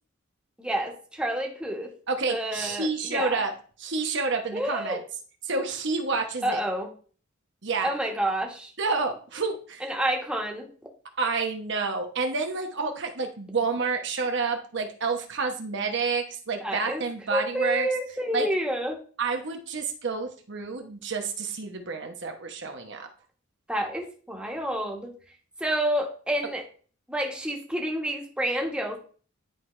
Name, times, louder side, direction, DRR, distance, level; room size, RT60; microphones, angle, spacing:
voice 1, 0.6-1.9 2.3-3.4 4.5-5.0 6.4-6.9 7.8-8.7 9.8-10.7 16.6-17.0 17.3-19.0 23.7-25.1 25.6-26.6 27.1-29.0, right 1 dB, 5° right, 0 dB, 1.3 m, -29 dB
voice 2, 2.1-3.5 3.8-5.0 5.4-6.6 7.6-7.9 8.8-9.9 11.2-17.9 18.3-18.5 19.2-23.1, right 4 dB, 60° right, 4 dB, 1.0 m, -29 dB
10.5 x 4.7 x 3.2 m, 0.41 s
head